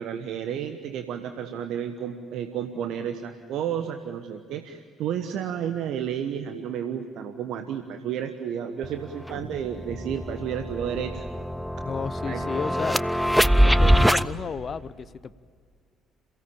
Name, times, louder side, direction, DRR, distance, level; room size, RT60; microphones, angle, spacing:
voice 1, 0.0-11.3 12.3-12.4, right 9 dB, 60° right, 8 dB, 1.2 m, -31 dB
sound 1, 8.8-8.9 9.3-14.3, equal, ahead, 0.7 m, -23 dB
voice 2, 11.8-13.0 13.6-15.3, left 6 dB, 40° left, 18 dB, 0.8 m, -33 dB
28.0 x 17.0 x 8.8 m, 2.2 s
hypercardioid pair, 50°, 0 cm